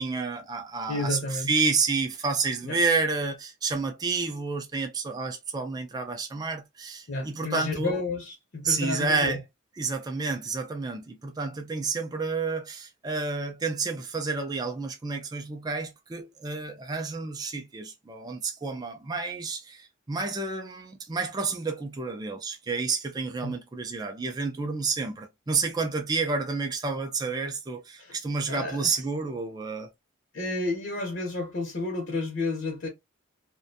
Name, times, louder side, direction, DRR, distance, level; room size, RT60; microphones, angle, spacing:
voice 1, 0.0-8.0 8.6-9.4 9.8-29.9, right 4 dB, 20° right, 0.3 m, -30 dB
voice 2, 0.9-1.5 2.6-2.8 7.1-9.4 23.4-23.5 28.0-28.2 28.5-28.9 30.3-32.9, left 2 dB, 55° left, 0.7 m, -31 dB
2.4 x 2.2 x 2.5 m
head